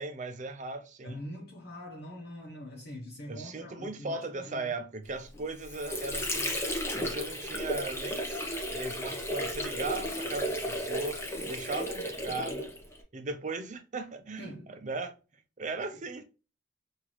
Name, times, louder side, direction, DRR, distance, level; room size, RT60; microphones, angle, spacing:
voice 1, 0.0-1.2 3.3-6.5 6.9-8.4 8.7-12.7 13.1-15.2 15.6-16.2, right 3 dB, 40° right, 0.7 m, -37 dB
voice 2, 1.0-4.8 14.4-14.8 15.9-16.1, equal, 60° left, 1.0 m, -44 dB
Water / Sink (filling or washing), 5.3-13.0, equal, 15° left, 0.9 m, -34 dB
5.8 x 2.7 x 3.1 m
head